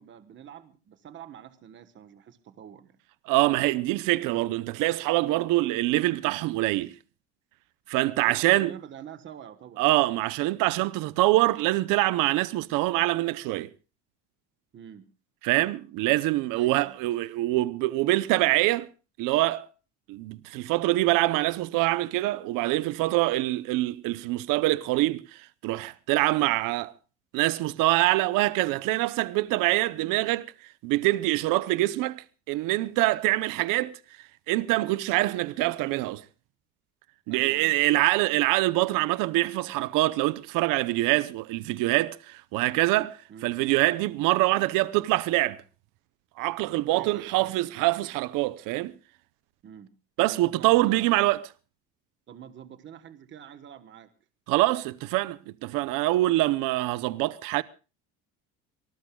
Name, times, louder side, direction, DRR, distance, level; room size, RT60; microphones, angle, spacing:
voice 1, 0.0-3.0 8.2-9.8 14.7-15.1 16.5-17.0 29.9-30.1 37.3-38.0 43.3-43.5 46.9-47.6 49.6-49.9 50.4-51.3 52.3-54.1, right 9 dB, 35° right, 1.2 m, -46 dB
voice 2, 3.3-7.0 7.9-8.7 9.8-13.7 15.4-18.9 19.2-19.7 20.1-26.9 27.3-30.5 30.8-34.0 34.5-36.2 37.3-45.6 46.4-48.9 50.2-51.4 54.5-57.6, right 18 dB, 75° right, 0.7 m, -25 dB
26.0 x 19.0 x 2.3 m
cardioid pair, 145°, 33 cm